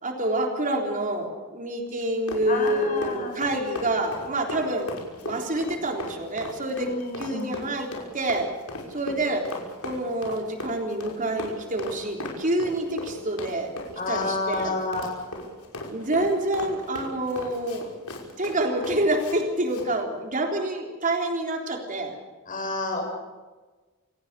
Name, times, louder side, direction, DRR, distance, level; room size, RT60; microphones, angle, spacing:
voice 1, 0.0-4.9 5.2-7.9 8.1-8.5 8.9-9.4 9.8-13.7 14.1-14.7 15.9-18.0 18.4-22.2, right 1 dB, 35° right, 2 dB, 3.7 m, -27 dB
Run, 2.0-19.4 19.7-19.9, left 2 dB, 80° left, 5.7 m, -37 dB
voice 2, 2.5-3.3 6.7-7.6 14.0-15.1 22.5-23.0, left 3 dB, 40° left, 1 dB, 7.5 m, -30 dB
28.5 x 17.5 x 6.8 m, 1.3 s
head